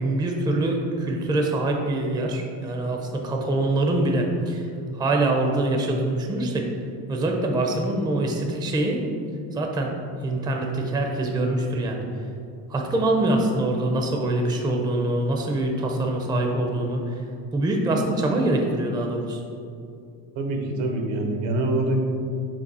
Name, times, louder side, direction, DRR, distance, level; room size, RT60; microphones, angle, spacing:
voice 1, 0.0-4.7 4.9-6.7 7.1-9.0 9.5-10.0 10.2-12.0 12.7-17.2 17.5-19.4, right 2 dB, 10° right, 2 dB, 0.4 m, -24 dB
voice 2, 20.4-22.0, right 2 dB, 80° right, 3 dB, 1.1 m, -25 dB
5.3 x 3.4 x 5.4 m, 2.4 s
cardioid pair, 135°, 45 cm